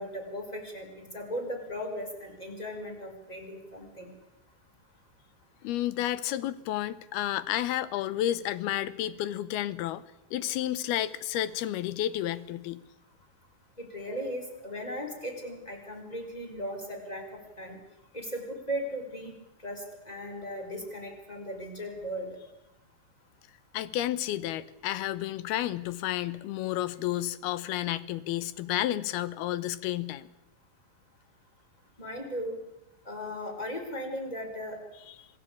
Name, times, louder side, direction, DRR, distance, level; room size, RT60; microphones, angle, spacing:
voice 1, 0.0-4.1 13.8-17.2 17.6-17.8 18.1-19.3 19.6-22.4 32.0-32.5 33.0-34.8, equal, 10° left, 3 dB, 4.6 m, -37 dB
voice 2, 5.6-10.0 10.3-12.8 23.7-30.3, left 13 dB, 85° left, 16 dB, 2.9 m, -31 dB
26.5 x 17.5 x 8.6 m, 0.88 s
omnidirectional pair, 4.3 m